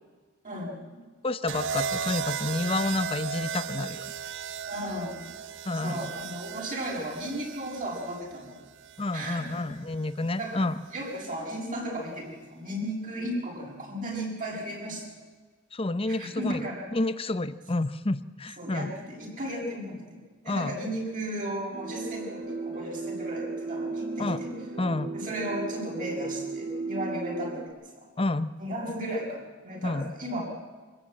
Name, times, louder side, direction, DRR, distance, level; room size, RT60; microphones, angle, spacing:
voice 1, 0.4-1.0 4.7-5.2 5.8-8.6 9.1-9.7 10.4-10.6 10.9-15.1 16.1-16.8 18.6-24.5 25.1-28.1 28.6-30.4, right 1 dB, 40° right, -1 dB, 7.0 m, -35 dB
voice 2, 1.2-4.1 5.6-6.1 9.0-10.8 15.7-18.9 20.5-20.7 24.2-24.4 24.8-25.1 28.2-28.5 29.8-30.1, left 2 dB, 25° left, 13 dB, 0.8 m, -29 dB
sound 1, 1.5-9.6 10.8-11.2, right 7 dB, 65° right, 0.6 m, -36 dB
sound 2, 21.7-27.7, right 3 dB, 80° right, 6.8 m, -35 dB
25.0 x 15.0 x 9.0 m, 1.4 s
head